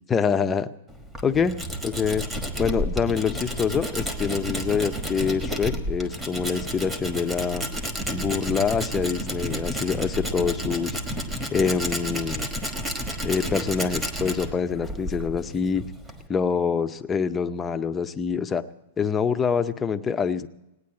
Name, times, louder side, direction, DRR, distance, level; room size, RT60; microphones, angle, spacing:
voice 1, 0.1-0.7 1.2-2.3 2.6-7.6 8.1-11.0 11.5-12.5 13.2-15.9 16.3-18.6 19.0-20.5, left 6 dB, 15° left, 8 dB, 0.6 m, -25 dB
Tools, 0.9-16.3, equal, 10° right, 1.2 m, -31 dB
18.0 x 9.5 x 8.5 m, 0.90 s
supercardioid pair, 160°, 0 cm